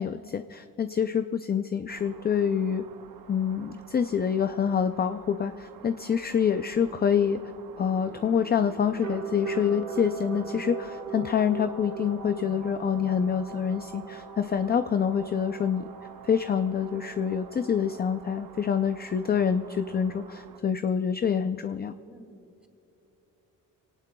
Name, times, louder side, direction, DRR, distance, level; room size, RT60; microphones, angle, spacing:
voice 1, 0.0-2.8 3.3-7.4 7.8-15.9 16.2-21.9, left 7 dB, 30° left, 9 dB, 0.4 m, -26 dB
sound 1, 1.9-20.6, right 7 dB, 85° right, 1.0 m, -51 dB
sound 2, 6.8-20.4, right 6 dB, 60° right, 1.5 m, -41 dB
voice 2, 22.1-22.7, equal, 5° right, 5 dB, 1.3 m, -52 dB
26.5 x 18.0 x 2.3 m, 2.9 s
wide cardioid pair, 135°, 34 cm